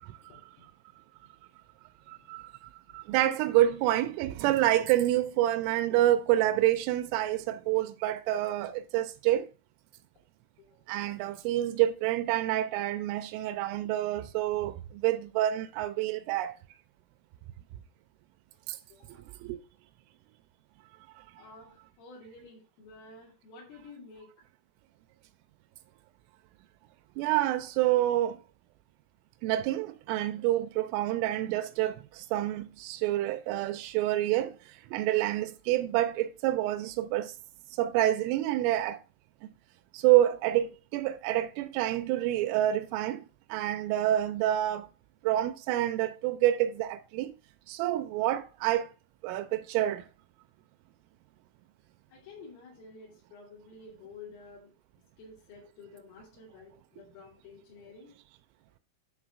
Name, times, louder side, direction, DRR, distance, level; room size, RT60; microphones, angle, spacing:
voice 1, 2.1-2.5 2.9-9.5 10.9-16.5 18.7-18.8 19.4-19.6 27.2-28.4 29.4-34.5 34.9-37.3 37.8-39.0 39.9-43.2 43.5-44.9 45.2-47.3 47.7-48.9 49.2-50.1, right 13 dB, 90° right, 3.2 m, -27 dB
voice 2, 18.9-19.3 21.4-24.3 52.1-54.7 55.2-58.1, left 3 dB, 85° left, 5.6 m, -51 dB
11.0 x 4.0 x 6.2 m
omnidirectional pair, 5.6 m